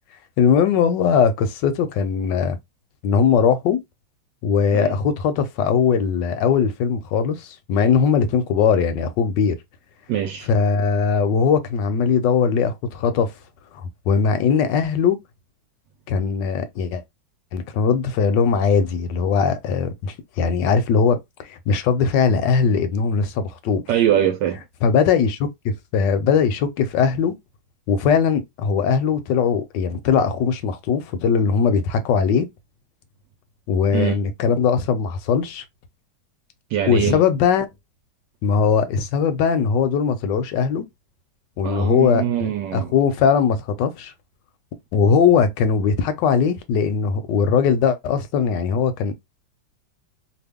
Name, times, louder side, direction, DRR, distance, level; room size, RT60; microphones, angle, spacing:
voice 1, 0.4-2.6 3.0-3.8 4.4-9.6 10.5-13.3 14.1-15.2 16.1-17.0 17.5-23.8 24.8-27.3 27.9-32.5 33.7-35.6 36.9-37.7 38.4-40.9 41.6-44.1 44.9-49.1, left 6 dB, 75° left, 1.2 m, -20 dB
voice 2, 10.1-10.5 23.9-24.6 33.9-34.2 36.7-37.2 41.6-42.9, right 10 dB, 75° right, 1.1 m, -22 dB
3.0 x 2.3 x 3.4 m
omnidirectional pair, 2.1 m